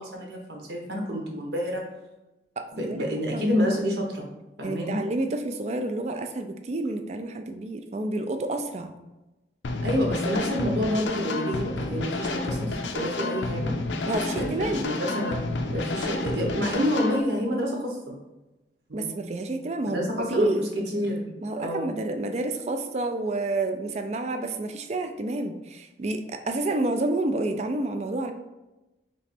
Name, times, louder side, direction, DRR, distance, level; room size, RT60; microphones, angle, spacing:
voice 1, 0.0-1.8 2.7-4.3 4.6-5.0 9.8-13.7 14.3-15.4 15.7-18.0 18.9-19.1 19.9-21.3 21.6-21.9, equal, 70° right, 0 dB, 1.0 m, -28 dB
voice 2, 2.6-3.0 3.3-3.5 4.6-8.9 14.0-14.9 18.9-20.6 21.4-28.3, right 2 dB, 35° right, 7 dB, 0.3 m, -29 dB
sound 1, 9.6-17.2, left 2 dB, 90° left, 0.5 m, -30 dB
3.2 x 3.1 x 4.2 m, 1.0 s
head